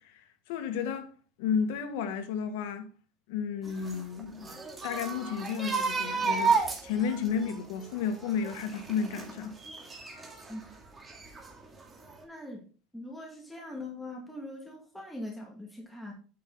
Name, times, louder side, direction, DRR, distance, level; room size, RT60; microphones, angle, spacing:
voice 1, 0.1-1.1 1.4-2.9 3.3-9.6, left 6 dB, 85° left, 1.6 m, -32 dB
sound 1, 3.7-10.5 11.0-11.8 12.1-12.2, right 5 dB, 15° right, 2.2 m, -33 dB
voice 2, 12.2-12.7 12.9-16.1, left 1 dB, ahead, 2.1 m, -41 dB
9.4 x 6.0 x 4.0 m
cardioid pair, 140°, 0 cm